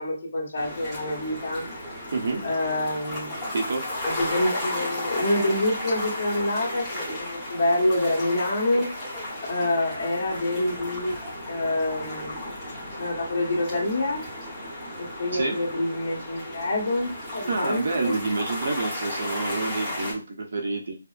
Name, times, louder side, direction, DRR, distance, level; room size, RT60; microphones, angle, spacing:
voice 1, 0.0-1.6 2.4-3.5 4.0-8.9 9.5-11.2 11.5-12.5 13.0-14.3 15.0-18.1, left 1 dB, 40° left, -3 dB, 1.6 m, -27 dB
sound 1, 0.5-20.1, left 1 dB, 5° right, 1.0 m, -34 dB
voice 2, 2.1-2.4 3.5-3.9 15.3-15.6 17.5-20.9, right 3 dB, 45° right, 2 dB, 0.8 m, -28 dB
5.8 x 2.1 x 2.5 m, 0.30 s
hypercardioid pair, 180°, 0 cm